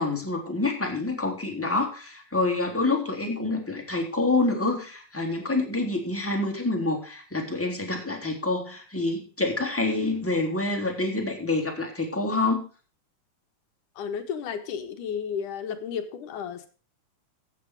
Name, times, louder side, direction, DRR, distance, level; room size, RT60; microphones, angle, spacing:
voice 1, 0.0-12.6, left 2 dB, 5° left, 0 dB, 3.0 m, -27 dB
voice 2, 14.0-16.7, left 7 dB, 70° left, 7 dB, 2.8 m, -33 dB
15.0 x 8.4 x 4.7 m, 0.37 s
omnidirectional pair, 4.0 m